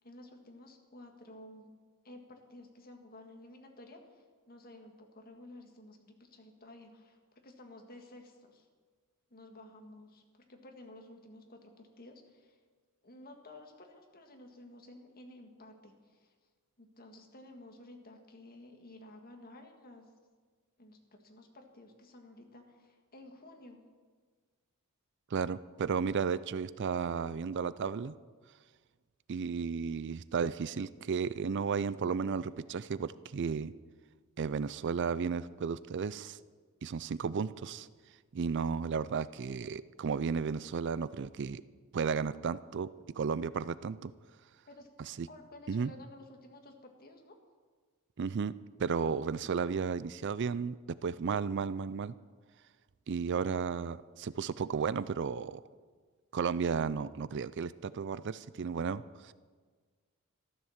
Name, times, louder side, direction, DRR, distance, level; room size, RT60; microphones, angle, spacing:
voice 1, 0.0-1.7 2.0-8.7 9.3-12.6 13.0-16.3 16.8-20.1 20.8-23.8 44.7-44.9 45.3-47.4, left 1 dB, 45° left, 3 dB, 2.0 m, -53 dB
voice 2, 25.3-28.1 29.3-33.7 34.4-36.4 36.8-37.9 38.3-41.6 41.9-42.9 43.2-44.1 45.0-45.3 45.7-45.9 48.2-48.5 48.8-52.1 53.1-55.6 56.3-59.3, right 6 dB, 55° right, 17 dB, 0.4 m, -33 dB
14.0 x 12.5 x 7.3 m, 1.5 s
head